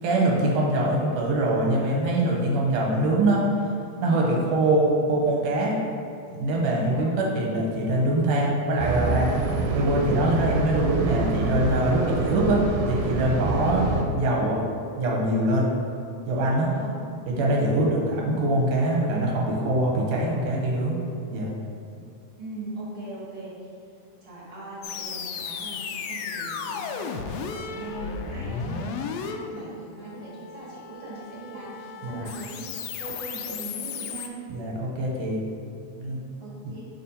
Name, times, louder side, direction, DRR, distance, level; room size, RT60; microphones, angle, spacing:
voice 1, 0.0-3.4 4.0-5.7 6.3-9.3 9.7-13.9 14.1-14.6 15.0-15.7 16.3-16.7 17.3-21.0 21.3-21.5 28.5-28.7 32.0-32.3 34.5-35.4 36.0-36.2, right 1 dB, 70° right, -2 dB, 2.0 m, -23 dB
sound 1, 8.8-14.0, right 3 dB, 90° right, 2.0 m, -26 dB
voice 2, 22.4-23.5 24.2-28.9 29.2-34.4 36.4-36.9, right 2 dB, 50° right, -7 dB, 1.8 m, -40 dB
sound 2, 24.8-34.3, left 5 dB, 90° left, 1.4 m, -35 dB
4.5 x 4.2 x 5.4 m, 2.6 s
omnidirectional pair, 3.4 m